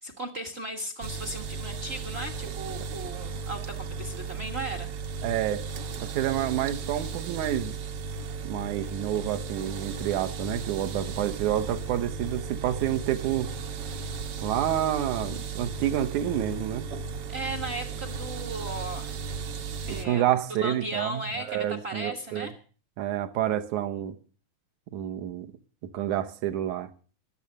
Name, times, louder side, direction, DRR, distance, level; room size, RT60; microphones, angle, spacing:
voice 1, 0.0-4.9 17.3-19.2 19.9-20.2 20.5-22.5, right 2 dB, 40° right, 0.9 m, -36 dB
sound 1, 1.0-20.1, right 5 dB, 60° right, 1.7 m, -35 dB
voice 2, 5.2-5.7 6.0-7.8 8.4-13.5 14.4-16.9 19.9-22.5 23.0-24.2 24.9-25.5 25.8-26.9, right 11 dB, 75° right, 2.3 m, -29 dB
21.5 x 7.3 x 6.5 m
omnidirectional pair, 3.5 m